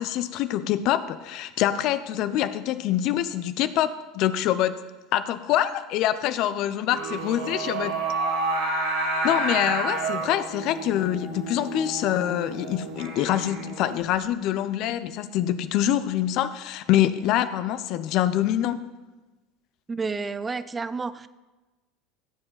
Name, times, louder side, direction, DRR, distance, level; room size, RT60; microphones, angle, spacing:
voice 1, 0.0-4.7 5.1-7.9 9.2-18.9, left 12 dB, 55° left, 13 dB, 0.6 m, -25 dB
Singing, 6.9-14.0, right 3 dB, 85° right, 3.4 m, -30 dB
voice 2, 19.9-21.3, right 4 dB, 20° right, 15 dB, 0.5 m, -30 dB
16.0 x 7.7 x 4.0 m, 1.2 s
hypercardioid pair, 80°, 0 cm